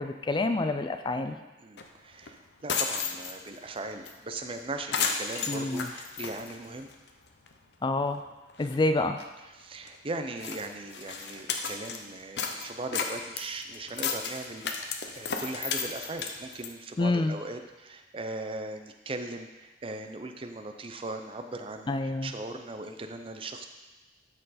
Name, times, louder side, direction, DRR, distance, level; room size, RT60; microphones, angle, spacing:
voice 1, 0.0-1.4 5.5-5.9 7.8-8.2 8.6-9.2 17.0-17.3 21.9-22.3, left 2 dB, 25° left, 8 dB, 0.3 m, -27 dB
voice 2, 1.6-6.9 9.4-23.7, right 2 dB, 30° right, 6 dB, 0.5 m, -39 dB
sound 1, 1.8-1.9 2.2-2.3 2.6-3.6 4.1-4.2 4.4-4.6 4.9-7.1 7.5-7.6 8.1-8.2 8.5-8.7 9.2-9.3 9.9-10.0 10.4-12.0 12.4-16.7, left 6 dB, 70° left, 0.7 m, -33 dB
12.5 x 4.5 x 4.2 m, 1.1 s
head